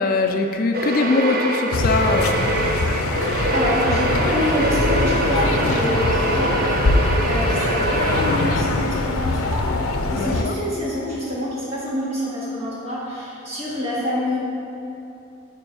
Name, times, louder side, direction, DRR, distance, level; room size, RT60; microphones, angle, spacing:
voice 1, 0.0-2.5 10.2-10.5, left 3 dB, 45° left, 5 dB, 0.4 m, -21 dB
sound 1, 0.7-9.0, right 2 dB, 45° right, 0.7 m, -24 dB
sound 2, 1.7-10.4, left 2 dB, 85° left, 0.6 m, -23 dB
voice 2, 3.5-9.7 10.1-14.4, left 1 dB, 30° right, -7 dB, 2.0 m, -26 dB
9.8 x 5.2 x 4.8 m, 2.7 s
head